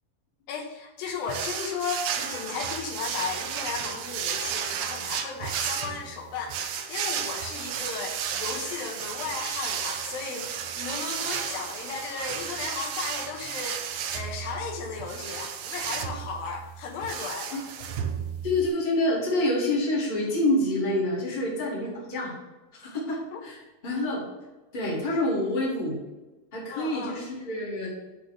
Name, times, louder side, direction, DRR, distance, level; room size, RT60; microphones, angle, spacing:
voice 1, 0.5-17.9 23.3-23.4 26.7-27.2, left 5 dB, 80° left, 1 dB, 2.8 m, -35 dB
sound 1, 1.3-18.7, right 8 dB, 75° right, 2.0 m, -33 dB
voice 2, 18.4-22.3 22.7-24.2 24.7-26.0 26.5-27.9, left 1 dB, 15° left, -5 dB, 1.9 m, -27 dB
8.2 x 4.0 x 6.5 m, 1.1 s
omnidirectional pair, 4.2 m